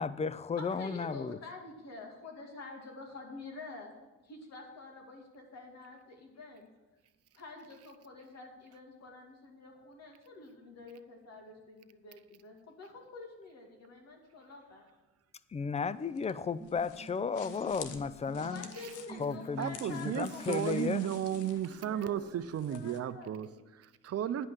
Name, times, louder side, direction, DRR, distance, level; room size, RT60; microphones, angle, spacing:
voice 1, 0.0-1.4 15.5-18.7 19.2-21.1, left 5 dB, 20° left, 0.4 m, -34 dB
voice 2, 0.6-6.7 7.3-14.9 18.4-22.3 22.7-23.6, left 3 dB, 60° left, 2.5 m, -48 dB
sound 1, 15.8-23.0, left 8 dB, 80° left, 0.9 m, -51 dB
sound 2, 16.6-21.4, right 3 dB, 10° right, 1.1 m, -50 dB
voice 3, 19.6-23.5 23.8-24.5, right 10 dB, 55° right, 0.6 m, -34 dB
10.0 x 5.5 x 8.0 m
cardioid pair, 90°, 30 cm